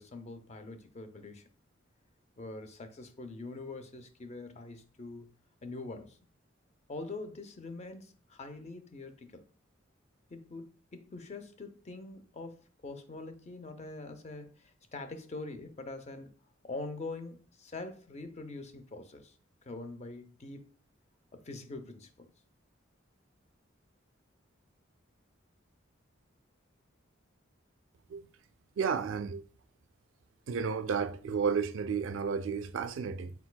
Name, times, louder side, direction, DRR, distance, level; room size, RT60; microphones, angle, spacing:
voice 1, 0.0-1.5 2.4-5.3 5.6-6.3 6.9-9.4 10.3-16.3 16.6-19.3 19.6-20.6 21.3-22.3, left 3 dB, 35° left, 0.5 m, -44 dB
voice 2, 28.8-29.4 30.5-33.3, right 6 dB, 75° right, 0.4 m, -32 dB
4.5 x 3.9 x 2.2 m
head